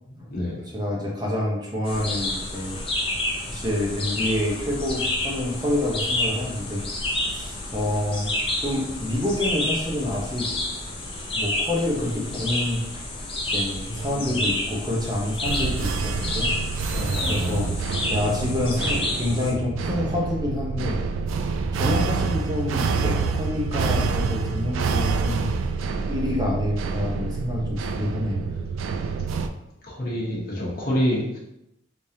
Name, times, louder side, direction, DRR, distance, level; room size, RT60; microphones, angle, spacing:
voice 1, 0.1-0.6 13.9-14.3 16.9-17.7 29.9-31.4, equal, 45° left, -5 dB, 1.2 m, -28 dB
voice 2, 0.7-2.8 3.5-6.8 7.3-8.3 8.6-10.5 11.3-13.0 13.5-16.6 17.3-17.7 18.1-21.0 21.7-25.5 26.1-28.4, left 1 dB, 20° right, -3 dB, 0.8 m, -27 dB
sound 1, 1.8-19.5, left 1 dB, 25° left, 0.5 m, -29 dB
sound 2, 15.4-29.5, right 4 dB, 80° right, 0.3 m, -27 dB
3.5 x 3.2 x 2.8 m, 0.85 s
head